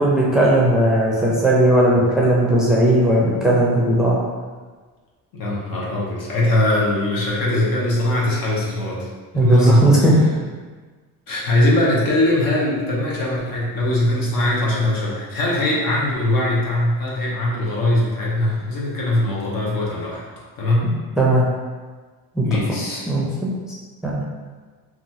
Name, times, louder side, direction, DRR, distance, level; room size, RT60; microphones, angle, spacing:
voice 1, 0.0-4.2 9.3-10.1 21.2-21.5 22.4-22.6 23.1-23.5 24.0-24.2, right 1 dB, ahead, -4 dB, 0.5 m, -17 dB
voice 2, 5.3-9.1 9.3-9.9 11.3-21.0 22.4-23.0, left 1 dB, 65° left, -5 dB, 0.9 m, -21 dB
2.9 x 2.4 x 2.7 m, 1.4 s
cardioid pair, 95°, 37 cm